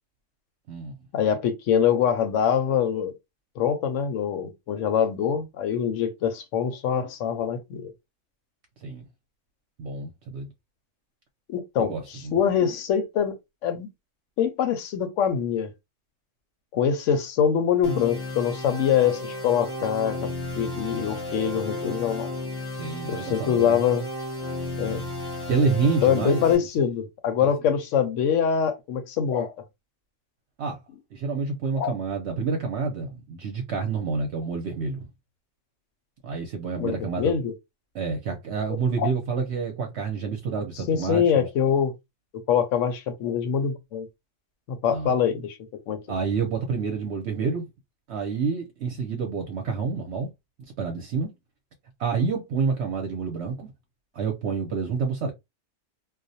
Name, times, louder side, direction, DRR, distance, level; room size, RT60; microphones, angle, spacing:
voice 1, 1.1-3.1 3.6-7.9 11.5-13.4 13.6-13.9 14.4-15.7 16.7-20.3 20.6-22.3 23.1-24.0 24.8-25.0 26.0-29.5 31.8-31.9 36.8-37.5 39.0-39.1 40.9-41.9 42.5-44.1 44.7-45.6 45.9-46.0, left 8 dB, 75° left, 0.9 m, -24 dB
voice 2, 9.8-10.5 11.8-12.4 22.8-23.8 25.5-26.7 30.6-30.8 31.1-35.1 36.2-37.4 37.9-41.5 44.9-45.1 46.1-47.7 48.1-50.3 50.8-51.3 52.0-53.7 54.1-55.3, right 5 dB, 65° right, 0.8 m, -28 dB
sound 1, 17.8-26.5, left 2 dB, 25° left, 0.6 m, -33 dB
2.4 x 2.0 x 2.6 m
omnidirectional pair, 1.3 m